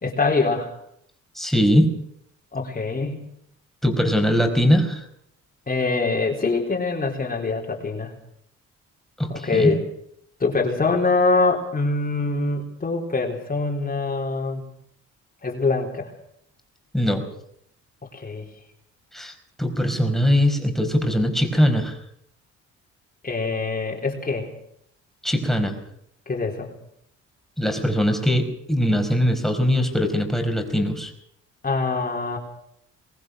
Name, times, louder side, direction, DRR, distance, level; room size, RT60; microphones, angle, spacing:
voice 1, 0.0-0.7 2.5-3.3 5.7-8.1 9.3-9.8 10.4-14.6 15.4-16.1 18.1-18.5 23.2-24.5 26.3-26.7 31.6-32.4, left 3 dB, 30° left, 0 dB, 4.1 m, -24 dB
voice 2, 1.3-1.9 3.8-5.0 9.2-9.8 16.9-17.2 19.1-22.0 25.2-25.8 27.6-31.1, equal, ahead, 4 dB, 4.9 m, -21 dB
23.0 x 19.5 x 6.5 m, 0.71 s
cardioid pair, 90°, 30 cm